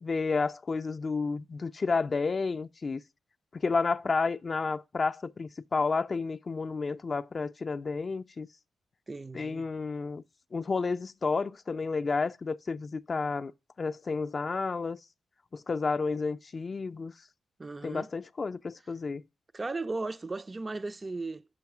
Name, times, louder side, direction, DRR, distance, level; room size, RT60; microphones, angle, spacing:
voice 1, 0.0-3.0 3.5-8.5 9.3-10.2 10.5-13.5 13.8-15.0 15.5-17.1 17.8-19.2, left 4 dB, 45° left, 0.4 m, -31 dB
voice 2, 9.1-9.7 17.6-18.1 19.5-21.5, right 3 dB, 30° right, 0.3 m, -36 dB
6.2 x 4.8 x 5.9 m
cardioid pair, 60°, 0 cm